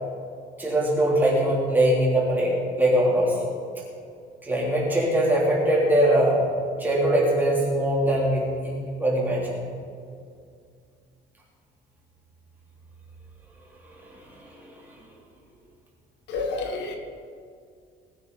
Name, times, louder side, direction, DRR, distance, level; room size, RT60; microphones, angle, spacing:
voice 1, 0.6-3.5 4.4-6.4 6.8-8.7 9.0-9.6, right 1 dB, 10° right, -5 dB, 3.3 m, -22 dB
voice 2, 16.3-16.9, left 3 dB, 65° left, 4 dB, 1.6 m, -29 dB
20.0 x 9.6 x 4.1 m, 2.3 s
cardioid pair, 175°, 19 cm